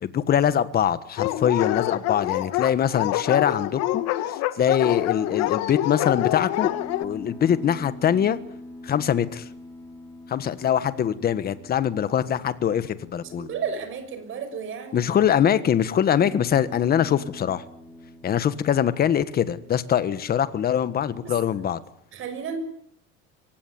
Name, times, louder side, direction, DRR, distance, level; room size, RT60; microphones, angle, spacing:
voice 1, 0.0-6.7 7.0-8.4 8.8-9.5 10.3-13.5 14.9-17.6 18.2-21.8, left 9 dB, 30° left, 14 dB, 1.5 m, -23 dB
Dog, 1.2-7.0, left 15 dB, 55° left, 1.6 m, -26 dB
sound 1, 6.7-14.0 16.0-20.2 20.8-21.2, left 1 dB, 5° left, 5.2 m, -44 dB
voice 2, 13.2-15.1 21.2-21.3 22.1-22.6, right 6 dB, 40° right, 8 dB, 6.4 m, -33 dB
24.0 x 18.0 x 9.7 m, 0.71 s
cardioid pair, 150°, 30 cm